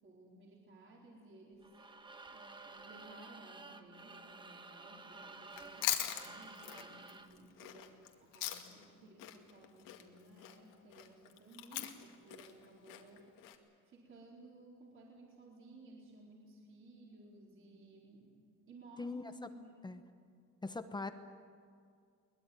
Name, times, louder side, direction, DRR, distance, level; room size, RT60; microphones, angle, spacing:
voice 1, 0.0-1.7 2.3-13.2 13.9-18.4 18.7-19.2 19.5-19.9, right 2 dB, 35° right, -2 dB, 4.2 m, -58 dB
sound 1, 1.6-7.4, right 3 dB, 15° right, 1.2 m, -52 dB
Chewing mastication, 5.5-8.9 9.2-13.6, left 12 dB, 70° left, 2.2 m, -41 dB
voice 2, 19.0-19.5 19.8-20.0 20.6-21.1, left 3 dB, 15° left, 9 dB, 0.9 m, -41 dB
23.0 x 20.5 x 9.4 m, 2.2 s
cardioid pair, 155°, 34 cm